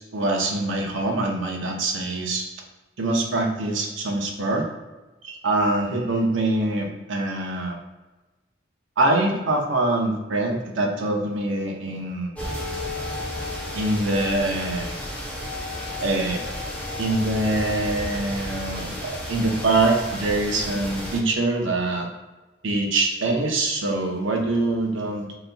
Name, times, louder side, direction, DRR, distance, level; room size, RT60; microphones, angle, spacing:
voice 1, 0.1-2.4 3.0-4.6 5.2-7.8 9.0-12.3 13.7-14.9 16.0-16.4 17.0-22.1 22.6-25.3, right 2 dB, 85° right, 2 dB, 0.7 m, -24 dB
sound 1, 12.4-21.2, left 1 dB, 5° left, 0.5 m, -32 dB
4.0 x 3.9 x 2.2 m, 1.2 s
head